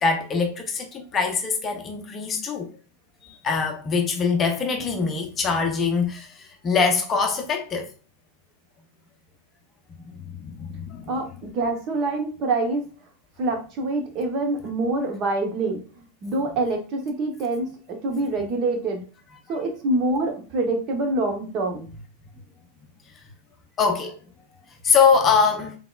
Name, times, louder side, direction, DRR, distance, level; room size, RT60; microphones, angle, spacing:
voice 1, 0.0-2.7 3.4-7.9 10.4-11.1 19.5-19.6 23.8-24.2 24.8-25.8, left 5 dB, 25° left, 0.7 m, -23 dB
voice 2, 11.1-12.9 13.4-15.8 16.2-19.0 19.5-21.9, right 2 dB, 35° right, 1.0 m, -25 dB
3.9 x 3.7 x 2.3 m
figure-of-eight pair, 90°, 0 cm